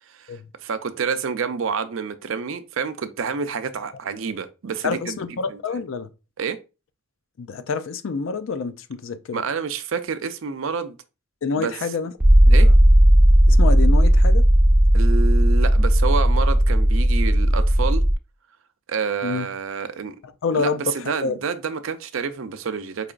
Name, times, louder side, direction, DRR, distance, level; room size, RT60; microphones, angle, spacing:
voice 1, 0.1-5.2 5.5-5.8 6.4-6.6 9.3-11.0 11.6-11.7 12.5-12.7 14.9-18.0 18.9-20.2 20.5-23.1, right 5 dB, 75° right, 0.5 m, -28 dB
voice 2, 4.8-6.1 7.4-9.4 11.4-12.1 12.5-12.7 13.5-14.4 19.2-19.5 20.4-20.8 21.2-21.4, left 4 dB, 75° left, 0.4 m, -27 dB
sound 1, 12.2-18.1, equal, 10° right, 0.4 m, -15 dB
4.8 x 2.9 x 2.4 m
head